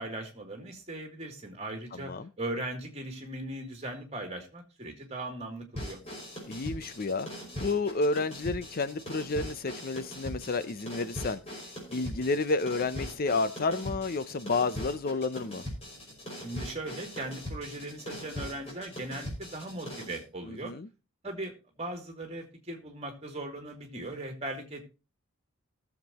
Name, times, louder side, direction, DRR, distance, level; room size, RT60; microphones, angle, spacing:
voice 1, 0.0-6.0 16.3-20.7 21.2-24.8, right 2 dB, 30° right, 2.6 m, -39 dB
voice 2, 1.9-2.3 6.5-7.3 7.6-11.4 11.9-15.6 20.4-20.9, left 3 dB, 45° left, 0.5 m, -30 dB
sound 1, 5.7-20.2, equal, 25° left, 5.6 m, -41 dB
19.0 x 7.4 x 2.9 m
head